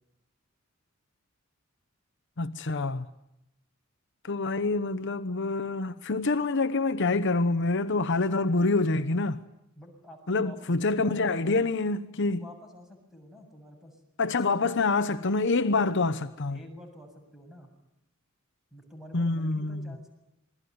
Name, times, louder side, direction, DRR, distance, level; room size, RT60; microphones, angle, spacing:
voice 1, 2.4-3.1 4.2-9.4 10.3-12.4 14.2-16.6 19.1-19.8, left 3 dB, 60° left, 1.0 m, -26 dB
voice 2, 9.8-10.6 10.9-11.7 12.3-14.8 16.5-17.7 18.7-20.1, left 1 dB, ahead, 7.5 m, -48 dB
27.5 x 21.5 x 9.5 m
head